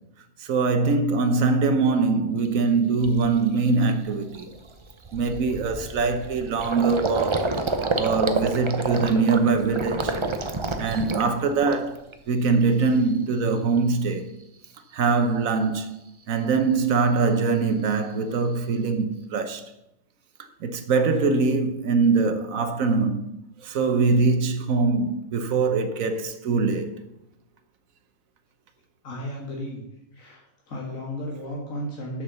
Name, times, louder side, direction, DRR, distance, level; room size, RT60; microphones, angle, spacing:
voice 1, 0.5-4.5 5.1-7.5 8.0-10.2 10.8-12.0 12.3-14.3 14.9-15.9 16.3-19.6 20.6-23.3 23.6-26.9, right 4 dB, 75° right, 1.3 m, -23 dB
Gurgling, 2.4-2.5 3.0-3.3 3.7-3.8 4.1-12.1 12.5-13.1, right 3 dB, 30° right, 0.5 m, -29 dB
voice 2, 29.0-29.8 30.1-32.2, equal, 70° left, 2.1 m, -34 dB
7.1 x 6.3 x 6.8 m
omnidirectional pair, 1.5 m